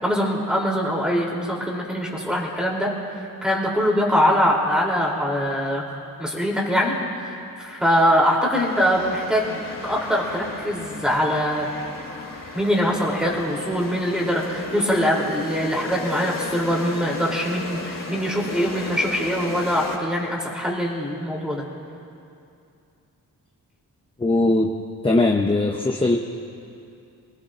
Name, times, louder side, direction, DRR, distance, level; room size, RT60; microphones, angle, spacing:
voice 1, 0.0-2.9 3.4-5.8 6.2-11.7 12.5-21.6, equal, ahead, -3 dB, 3.3 m, -23 dB
sound 1, 8.5-20.0, left 3 dB, 60° left, 3.1 m, -35 dB
voice 2, 24.2-24.7 25.0-26.2, left 2 dB, 15° left, 1 dB, 0.8 m, -20 dB
27.5 x 19.5 x 2.6 m, 2.5 s
wide cardioid pair, 125°, 36 cm